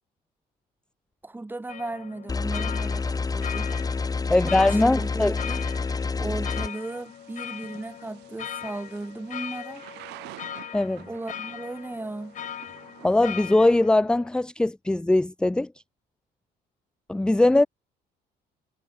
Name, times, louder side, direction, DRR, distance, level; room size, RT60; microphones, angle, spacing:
voice 1, 1.2-3.8 4.4-5.7 6.2-9.9 11.1-12.4, right 2 dB, 10° right, 1.9 m, -36 dB
sound 1, 1.7-14.3, left 9 dB, 50° left, 2.8 m, -39 dB
sound 2, 2.3-6.7, left 4 dB, 20° left, 1.7 m, -28 dB
Thunder / Rain, 3.0-13.6, right 20 dB, 90° right, 3.7 m, -51 dB
voice 2, 4.3-5.3 10.7-11.1 13.0-15.7 17.1-17.7, left 2 dB, 5° left, 0.3 m, -21 dB
cardioid pair, 110°, 17 cm